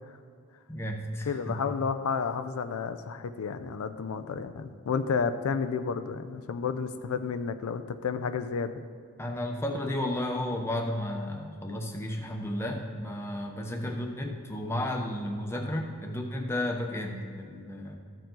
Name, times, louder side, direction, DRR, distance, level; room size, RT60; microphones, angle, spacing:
voice 1, 0.7-1.6 9.2-18.0, left 1 dB, 10° left, 2 dB, 0.7 m, -33 dB
voice 2, 1.3-8.7, left 5 dB, 85° left, 10 dB, 0.4 m, -31 dB
14.0 x 4.7 x 3.8 m, 2.2 s
head